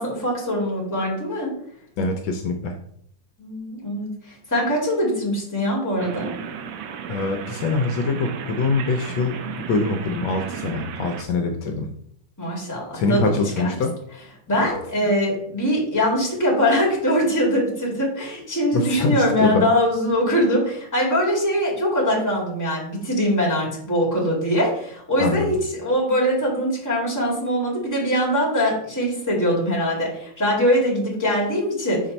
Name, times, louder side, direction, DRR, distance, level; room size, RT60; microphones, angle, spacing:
voice 1, 0.0-1.5 3.4-6.3 12.4-13.7 14.5-32.0, equal, 10° left, -4 dB, 1.9 m, -22 dB
voice 2, 2.0-2.8 7.1-9.4 9.7-11.9 12.9-13.9 18.7-19.7 25.2-25.5, left 3 dB, 75° left, 4 dB, 1.4 m, -24 dB
sound 1, 6.0-11.2, right 7 dB, 75° right, 1.4 m, -34 dB
5.8 x 4.4 x 4.0 m, 0.69 s
omnidirectional pair, 2.2 m